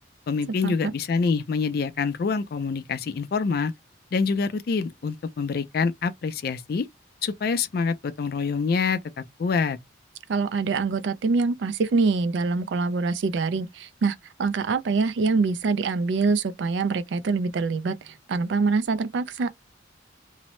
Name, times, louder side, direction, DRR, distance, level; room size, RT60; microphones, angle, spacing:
voice 1, 0.3-3.7 4.1-6.9 7.2-9.8, left 5 dB, 50° left, 0.3 m, -26 dB
voice 2, 10.3-19.5, right 4 dB, 70° right, 0.4 m, -25 dB
2.6 x 2.0 x 3.0 m
head